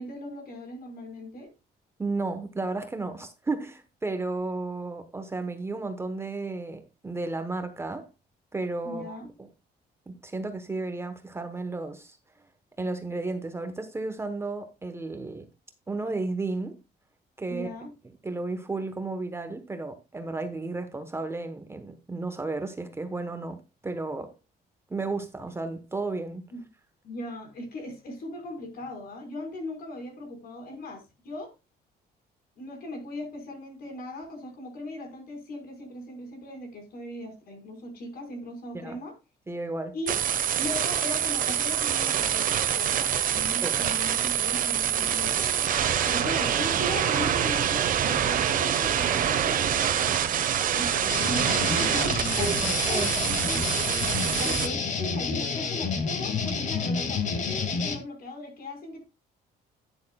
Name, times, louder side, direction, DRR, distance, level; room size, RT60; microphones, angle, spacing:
voice 1, 0.0-1.5 8.8-9.3 17.5-17.9 26.5-26.6 27.0-31.5 32.6-39.1 39.9-40.2 40.6-45.7 46.0-50.2 50.7-53.8 54.3-59.0, left 1 dB, 60° left, 4.6 m, -38 dB
voice 2, 2.0-8.1 8.5-9.5 10.1-12.2 12.8-15.5 15.9-16.8 17.4-17.7 18.2-24.3 24.9-26.5 38.8-39.0 39.5-39.9 43.6-43.8 52.4-53.1, right 3 dB, 15° right, 1.0 m, -33 dB
sound 1, 40.1-54.7, right 9 dB, 50° right, 1.1 m, -26 dB
sound 2, 51.1-58.0, left 5 dB, 45° left, 2.0 m, -29 dB
11.5 x 10.0 x 2.3 m
cardioid pair, 150°, 18 cm